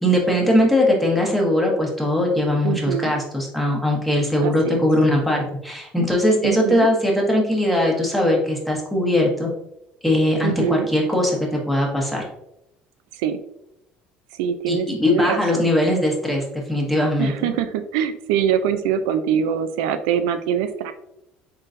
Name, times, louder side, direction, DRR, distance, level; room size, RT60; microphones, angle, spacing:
voice 1, 0.0-9.5 10.0-12.2 14.7-17.5, left 1 dB, ahead, -2 dB, 1.2 m, -20 dB
voice 2, 2.6-3.1 4.4-4.8 6.4-6.9 10.4-10.9 13.2-13.4 14.4-15.7 17.2-20.9, right 9 dB, 90° right, 9 dB, 0.3 m, -23 dB
3.9 x 3.7 x 2.6 m, 0.81 s
supercardioid pair, 105°, 4 cm